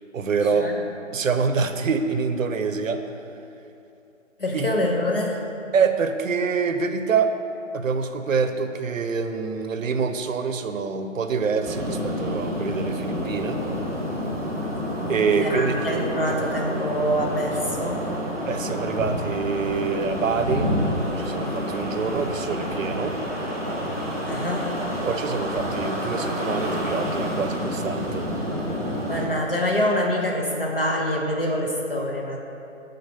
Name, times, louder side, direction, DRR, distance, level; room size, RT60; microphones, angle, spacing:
voice 1, 0.1-0.7 1.1-3.0 4.5-4.7 5.7-7.3 7.7-13.6 15.1-15.8 18.5-20.7 21.2-23.2 25.0-28.3, right 5 dB, 85° right, 8 dB, 0.6 m, -25 dB
voice 2, 4.4-5.4 15.1-18.1 24.2-24.8 29.1-32.4, equal, 45° left, -1 dB, 0.6 m, -25 dB
sound 1, 11.6-29.3, equal, 15° right, 0.9 m, -28 dB
6.6 x 4.0 x 5.2 m, 2.7 s
hypercardioid pair, 175°, 39 cm